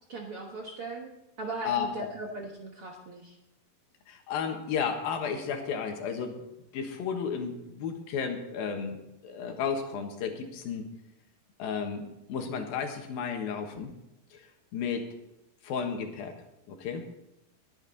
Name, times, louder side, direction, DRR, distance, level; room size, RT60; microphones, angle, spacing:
voice 1, 0.1-1.1 1.4-3.3, right 2 dB, 55° right, 0 dB, 1.6 m, -38 dB
voice 2, 4.1-6.4 6.7-9.0 9.2-10.9 11.6-13.9 14.3-14.5 14.7-15.1 15.6-16.4 16.7-17.1, left 6 dB, 80° left, 4 dB, 3.3 m, -33 dB
21.0 x 8.2 x 4.1 m, 0.88 s
omnidirectional pair, 4.2 m